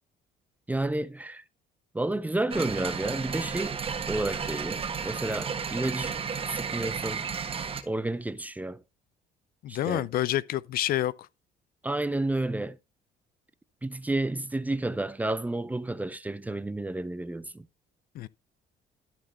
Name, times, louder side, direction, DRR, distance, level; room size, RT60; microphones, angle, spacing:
voice 1, 0.7-1.4 1.9-3.8 4.1-6.2 6.5-7.3 7.8-8.8 9.7-10.1 11.8-12.8 13.8-17.7, right 2 dB, 10° right, 0.5 m, -31 dB
sound 1, 2.5-7.8, right 6 dB, 35° right, 1.3 m, -33 dB
voice 2, 9.6-11.1 18.1-18.3, left 13 dB, 60° left, 0.5 m, -28 dB
13.0 x 4.3 x 4.2 m
cardioid pair, 110°, 17 cm